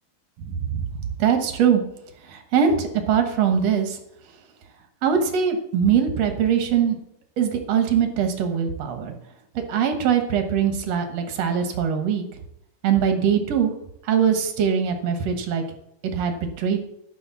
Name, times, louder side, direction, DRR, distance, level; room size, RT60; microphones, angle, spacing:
voice 1, 0.5-0.8 1.2-1.8 2.2-4.0 5.0-7.0 7.4-9.2 9.5-12.2 12.8-13.7 14.0-15.6 16.0-16.8, right 7 dB, 65° right, 6 dB, 1.7 m, -22 dB
10.5 x 6.1 x 7.0 m, 0.78 s
omnidirectional pair, 4.4 m